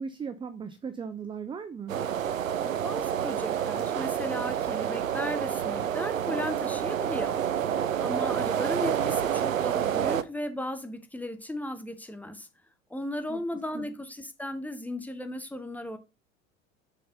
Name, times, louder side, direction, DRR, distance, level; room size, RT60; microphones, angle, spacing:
voice 1, 0.0-2.0 13.3-13.4 13.7-13.9, right 6 dB, 15° right, 0.5 m, -37 dB
sound 1, 1.9-10.2, right 9 dB, 85° right, 0.6 m, -28 dB
voice 2, 2.6-7.4 8.0-12.5 12.9-16.0, left 1 dB, 5° left, 1.0 m, -36 dB
6.5 x 4.2 x 5.3 m
figure-of-eight pair, 70°, 39 cm